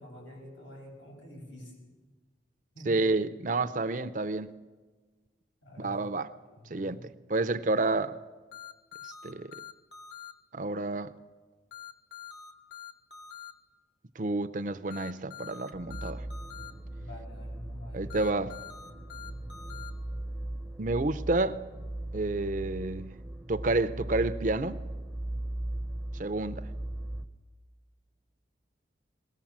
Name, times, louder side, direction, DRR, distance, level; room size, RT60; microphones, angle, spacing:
voice 1, 0.0-1.7 2.7-3.2 5.6-7.1 17.0-18.2, left 1 dB, 90° left, 7.1 m, -47 dB
voice 2, 2.9-4.5 5.8-6.3 6.7-8.2 9.0-9.5 10.5-11.1 14.2-16.2 17.9-18.6 20.8-21.6 22.1-23.1 23.5-24.8 26.2-26.6, right 2 dB, 45° right, 0.6 m, -29 dB
sound 1, 8.5-10.3 11.7-13.5 14.9-16.7 18.1-19.9, left 8 dB, 70° left, 2.0 m, -45 dB
sound 2, 15.7-27.3, right 1 dB, 5° right, 0.7 m, -38 dB
21.0 x 17.5 x 7.3 m
head